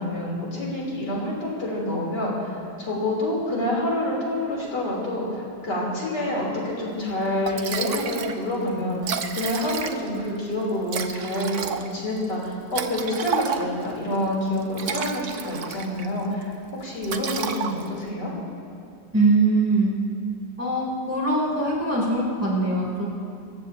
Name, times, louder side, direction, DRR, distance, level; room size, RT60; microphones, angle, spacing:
voice 1, 0.0-16.5 16.8-18.3, left 1 dB, 70° left, -4 dB, 4.2 m, -27 dB
Liquid, 7.1-7.2 7.5-8.4 8.7-8.8 8.9-10.2 10.9-13.9 14.6-16.1 16.4-16.7 17.0-18.1, right 7 dB, 55° right, 0.9 m, -31 dB
voice 2, 19.1-19.9 20.6-23.0, right 2 dB, 10° right, -5 dB, 3.4 m, -22 dB
27.5 x 15.0 x 2.9 m, 2.5 s
omnidirectional pair, 1.9 m